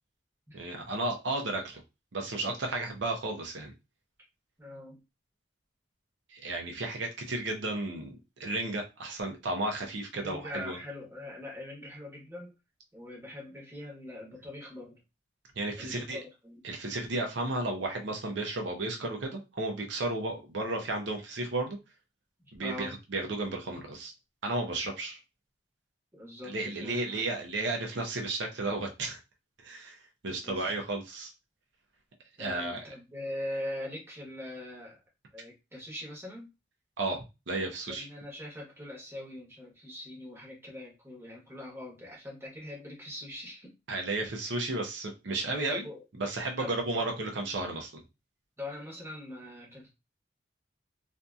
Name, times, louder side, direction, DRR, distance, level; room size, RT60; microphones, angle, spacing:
voice 1, 0.5-1.8 2.1-3.7 6.3-10.8 15.6-16.2 16.6-21.8 22.5-24.1 24.4-25.2 26.4-29.2 29.6-31.3 32.4-32.9 37.0-38.1 43.9-45.9 46.2-47.9, right 2 dB, 80° right, 2 dB, 0.7 m, -33 dB
voice 2, 4.6-5.0 10.1-12.5 12.9-15.0 15.8-16.7 22.6-22.9 26.1-27.2 30.4-30.8 32.4-35.0 35.3-36.5 37.9-43.7 45.7-46.0 46.6-47.1 48.6-49.9, left 1 dB, 15° right, -3 dB, 1.0 m, -42 dB
2.6 x 2.6 x 2.3 m, 0.25 s
head